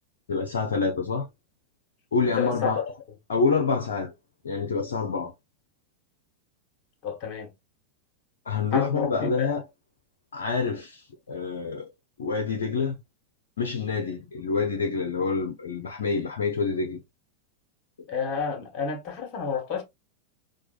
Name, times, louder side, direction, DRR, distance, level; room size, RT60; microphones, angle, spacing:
voice 1, 0.3-1.3 2.1-2.8 3.3-4.1 4.4-5.3 8.5-9.6 10.3-11.9 12.2-13.0 13.6-17.0, left 4 dB, 65° left, 0.7 m, -27 dB
voice 2, 2.3-2.9 7.0-7.5 8.7-9.5 18.1-19.8, left 5 dB, 35° left, 1.4 m, -30 dB
4.6 x 2.4 x 2.3 m
figure-of-eight pair, 90°, 0 cm